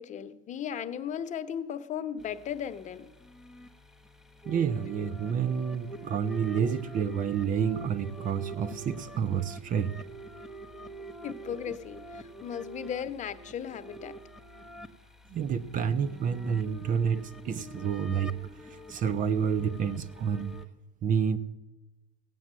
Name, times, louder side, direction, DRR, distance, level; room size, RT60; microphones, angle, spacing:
voice 1, 0.0-3.1 11.2-14.2, left 8 dB, 45° left, 1.0 m, -36 dB
sound 1, 2.2-20.7, right 1 dB, 5° right, 0.9 m, -46 dB
voice 2, 4.5-10.0 15.3-18.4 18.7-20.6 21.0-21.4, right 7 dB, 50° right, 1.0 m, -29 dB
16.5 x 9.1 x 7.6 m
supercardioid pair, 105°, 18 cm